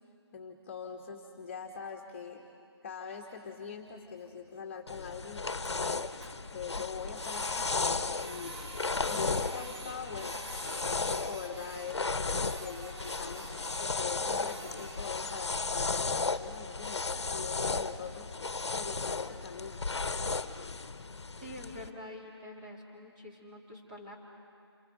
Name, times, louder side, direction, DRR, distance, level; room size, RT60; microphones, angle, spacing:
voice 1, 0.3-2.5 2.8-6.0 6.5-8.6 9.0-10.4 10.8-18.3 18.7-19.8, left 6 dB, 30° left, 1 dB, 1.7 m, -43 dB
Printer, 3.5-3.6 3.8-3.9 4.3-4.4 4.6-4.7 5.0-5.1 5.3-6.3 6.8-15.1, right 2 dB, 80° right, 3.5 m, -47 dB
sound 1, 4.9-21.9, left 3 dB, 85° left, 1.2 m, -35 dB
voice 2, 21.4-24.1, left 1 dB, 20° right, -2 dB, 3.3 m, -46 dB
28.0 x 26.5 x 5.2 m, 2.4 s
figure-of-eight pair, 165°, 14 cm